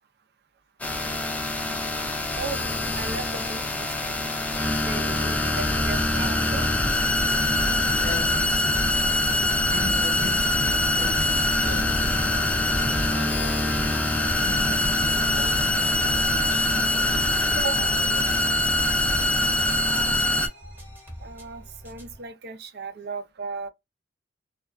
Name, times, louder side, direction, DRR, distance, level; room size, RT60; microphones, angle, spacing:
sound 1, 0.8-20.5, left 1 dB, 10° left, 0.3 m, -24 dB
voice 1, 2.4-2.7 3.0-4.2 4.6-6.7 17.6-18.0 21.2-23.7, right 5 dB, 60° right, 0.5 m, -36 dB
sound 2, 5.6-17.9, equal, 55° left, 0.6 m, -38 dB
voice 2, 7.9-9.4 9.7-12.0 12.7-17.7 17.9-18.5, left 3 dB, 85° left, 0.8 m, -40 dB
sound 3, 12.7-22.3, equal, 10° right, 0.9 m, -44 dB
2.4 x 2.3 x 2.2 m
head